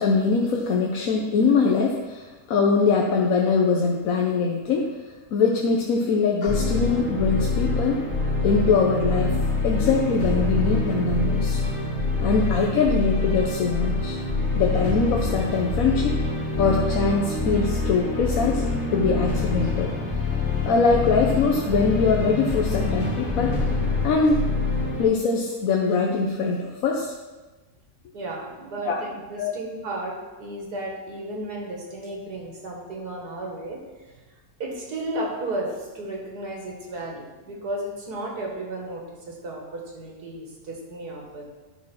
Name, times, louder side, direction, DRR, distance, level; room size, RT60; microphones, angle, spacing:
voice 1, 0.0-8.0 8.4-9.3 9.6-11.6 12.2-14.2 14.5-16.2 16.6-18.6 18.9-19.9 20.6-23.6 24.0-24.4 25.0-27.1 28.8-29.0 29.4-29.5, left 4 dB, 65° left, 0 dB, 1.2 m, -22 dB
sound 1, 6.5-25.0, left 3 dB, 45° left, 2.2 m, -25 dB
voice 2, 28.1-33.8 34.6-41.4, right 1 dB, 80° right, 0 dB, 2.2 m, -33 dB
10.5 x 4.4 x 6.1 m, 1.2 s
omnidirectional pair, 1.7 m